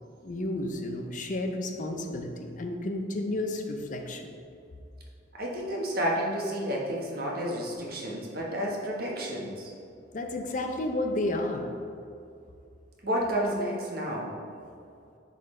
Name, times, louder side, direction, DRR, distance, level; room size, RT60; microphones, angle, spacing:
voice 1, 0.2-4.3 10.1-11.6, left 1 dB, 45° left, 4 dB, 0.6 m, -32 dB
voice 2, 5.4-9.7 13.0-14.3, equal, 55° right, -3 dB, 1.3 m, -31 dB
10.5 x 3.9 x 3.3 m, 2.6 s
head